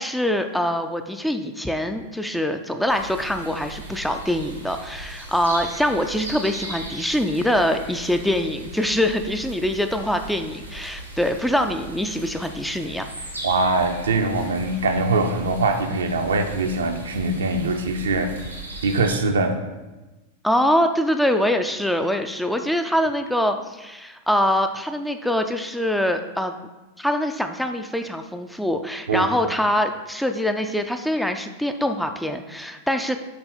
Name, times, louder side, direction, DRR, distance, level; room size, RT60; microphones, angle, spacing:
voice 1, 0.0-13.1 20.4-26.5 27.0-33.2, equal, ahead, 6 dB, 0.4 m, -24 dB
sound 1, 2.9-19.2, right 1 dB, 90° right, 1.5 m, -38 dB
voice 2, 13.4-18.3 18.8-19.6 29.1-29.3, right 3 dB, 70° right, 5 dB, 0.6 m, -22 dB
7.5 x 4.0 x 4.2 m, 1.1 s
figure-of-eight pair, 90°, 0 cm